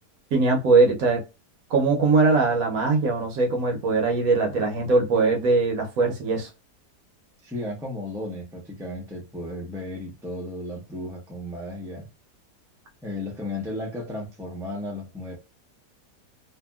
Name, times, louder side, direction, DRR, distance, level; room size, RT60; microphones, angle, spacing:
voice 1, 0.3-1.2 1.7-6.5, right 3 dB, 65° right, 1.1 m, -21 dB
voice 2, 7.4-12.1 13.0-15.4, left 1 dB, 5° right, 0.6 m, -34 dB
2.7 x 2.6 x 2.2 m
omnidirectional pair, 1.7 m